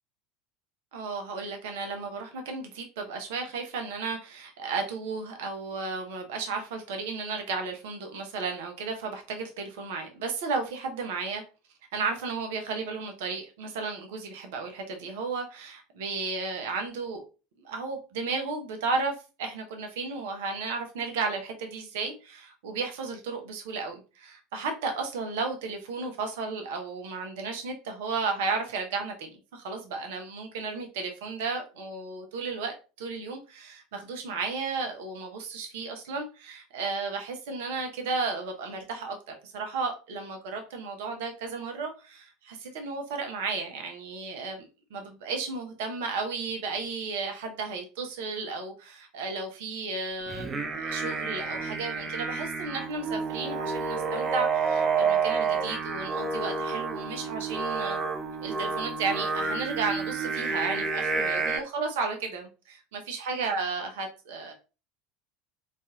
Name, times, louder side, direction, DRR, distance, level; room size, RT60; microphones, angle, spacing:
voice 1, 0.9-11.4 11.9-17.2 17.6-44.6 44.9-58.0 58.4-64.5, right 4 dB, 65° right, 0.7 m, -34 dB
Singing, 50.3-61.6, right 5 dB, 25° right, 0.6 m, -29 dB
4.1 x 2.5 x 2.3 m
figure-of-eight pair, 70°, 0 cm